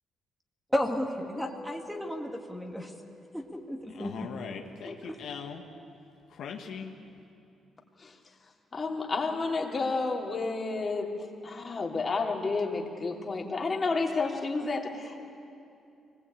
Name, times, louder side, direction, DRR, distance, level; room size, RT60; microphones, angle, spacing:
voice 1, 0.7-2.9 3.3-4.3 4.9-5.2, left 1 dB, ahead, 2 dB, 2.2 m, -33 dB
Mallet percussion, 1.4-4.8, left 1 dB, 35° right, 6.1 m, -51 dB
voice 2, 3.9-5.6 6.3-6.9, left 6 dB, 70° left, 2 dB, 1.8 m, -40 dB
voice 3, 8.7-11.1 11.4-15.2, left 3 dB, 35° left, 1 dB, 3.1 m, -30 dB
24.0 x 19.5 x 8.8 m, 2.6 s
cardioid pair, 90°, 0 cm